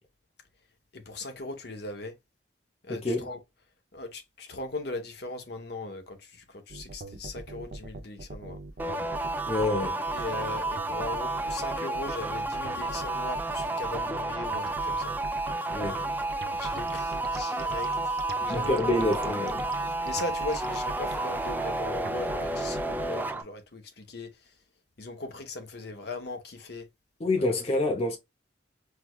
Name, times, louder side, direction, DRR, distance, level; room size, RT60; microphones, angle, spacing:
voice 1, 0.9-2.1 2.8-3.4 3.9-8.6 10.1-15.2 16.6-17.9 18.4-19.5 19.9-24.3 25.0-26.9, left 2 dB, 65° left, 0.9 m, -39 dB
voice 2, 2.9-3.3 9.5-10.0 15.7-16.0 18.5-19.7 27.2-28.2, left 2 dB, 35° left, 0.7 m, -27 dB
sound 1, 6.7-23.1, right 2 dB, 60° right, 0.5 m, -41 dB
sound 2, 8.8-23.4, right 2 dB, 10° right, 0.4 m, -31 dB
4.6 x 2.3 x 2.2 m
head